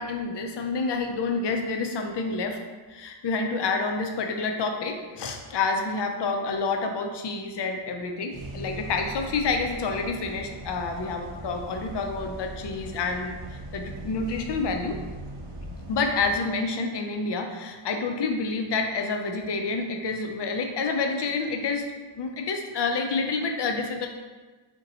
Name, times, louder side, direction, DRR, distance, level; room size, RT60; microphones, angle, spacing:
voice 1, 0.0-2.6 2.9-15.0 15.9-21.9 22.2-24.1, left 4 dB, 60° left, 4 dB, 0.5 m, -28 dB
sound 1, 8.3-16.4, right 2 dB, 60° right, 0.6 m, -40 dB
2.7 x 2.2 x 3.9 m, 1.3 s
wide cardioid pair, 80°, 49 cm